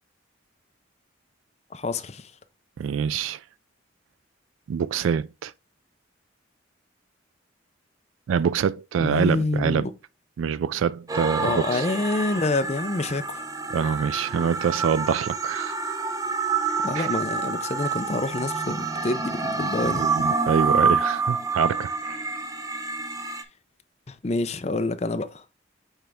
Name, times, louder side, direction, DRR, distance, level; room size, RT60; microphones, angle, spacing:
voice 1, 1.7-2.3 9.0-9.9 11.4-13.5 16.8-20.0 24.1-25.4, left 2 dB, 35° left, 0.5 m, -27 dB
voice 2, 2.8-3.4 4.7-5.5 8.3-9.9 10.4-11.8 13.7-15.9 16.9-17.1 19.8-22.3, right 7 dB, 85° right, 0.3 m, -25 dB
sound 1, 11.1-23.4, right 4 dB, 20° right, 0.5 m, -27 dB
8.9 x 3.4 x 3.5 m
head